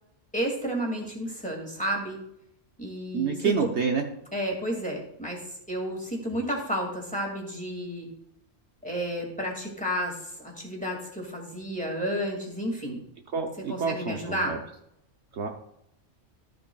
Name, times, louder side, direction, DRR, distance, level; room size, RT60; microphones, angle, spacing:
voice 1, 0.3-2.2 2.8-3.7 4.3-8.1 8.8-13.0 13.7-14.5, equal, 5° left, -1 dB, 2.1 m, -31 dB
voice 2, 3.1-4.0 13.3-14.6 15.3-15.5, right 5 dB, 60° right, 3 dB, 1.0 m, -28 dB
13.0 x 7.9 x 2.3 m, 0.77 s
omnidirectional pair, 1.3 m